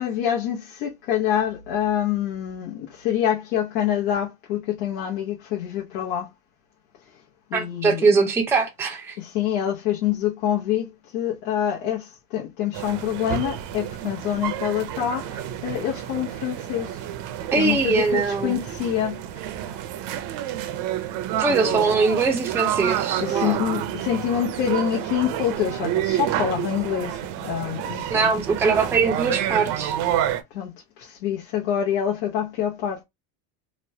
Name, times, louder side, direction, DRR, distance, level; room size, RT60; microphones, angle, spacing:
voice 1, 0.0-6.3 7.1-7.2 7.5-8.0 9.2-17.0 17.6-19.2 21.6-21.8 23.2-28.3 30.5-30.7 31.0-33.0, left 10 dB, 90° left, 0.8 m, -26 dB
voice 2, 7.5-9.2 17.5-18.6 21.4-23.6 28.1-30.0, right 4 dB, 5° right, 0.4 m, -22 dB
sound 1, 12.7-30.4, right 11 dB, 65° right, 0.6 m, -29 dB
3.0 x 2.1 x 2.7 m
cardioid pair, 135°, 44 cm